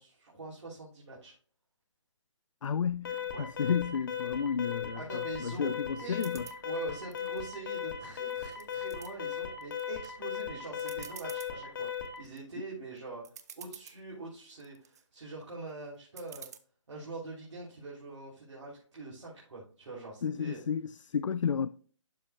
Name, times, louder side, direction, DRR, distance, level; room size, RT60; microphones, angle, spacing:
voice 1, 0.0-1.3 3.3-3.5 4.9-5.7 6.0-6.2 6.6-11.9 12.2-13.2 13.6-16.5 16.9-20.6, right 3 dB, 65° right, 3.1 m, -44 dB
voice 2, 2.6-6.4 20.2-21.7, left 7 dB, 75° left, 0.4 m, -32 dB
Alarm, 3.0-12.3, left 8 dB, 40° left, 1.4 m, -37 dB
sound 1, 6.2-6.6 7.1-7.9 8.3-9.1 9.6-10.1 10.4-10.5 10.8-11.5 12.1-12.4 13.0-13.1 13.2-14.0 14.5-15.0 16.2-16.6, right 8 dB, 30° right, 0.5 m, -49 dB
12.0 x 4.3 x 2.2 m
figure-of-eight pair, 155°, 16 cm